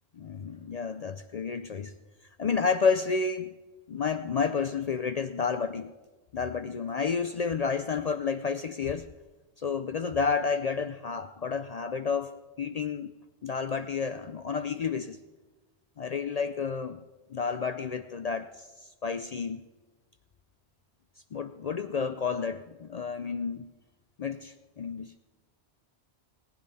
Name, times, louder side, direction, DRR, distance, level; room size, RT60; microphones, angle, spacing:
voice 1, 0.1-1.9 2.4-3.5 3.9-5.9 6.3-9.1 9.6-13.1 13.4-15.2 16.0-17.0 17.3-19.7 21.3-23.7 24.2-25.1, left 5 dB, 55° left, 10 dB, 0.4 m, -30 dB
19.0 x 9.4 x 4.1 m, 1.2 s
omnidirectional pair, 1.1 m